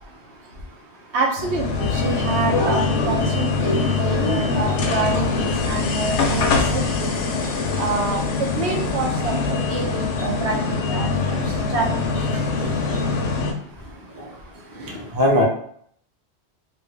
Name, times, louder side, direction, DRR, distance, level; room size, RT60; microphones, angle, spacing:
voice 1, 1.1-7.1 7.8-11.9, right 3 dB, 75° right, 1 dB, 0.9 m, -27 dB
sound 1, 1.4-13.5, left 4 dB, 85° left, 0.9 m, -23 dB
voice 2, 14.8-15.4, left 1 dB, 25° right, -3 dB, 0.6 m, -20 dB
2.7 x 2.6 x 3.2 m, 0.64 s
omnidirectional pair, 1.2 m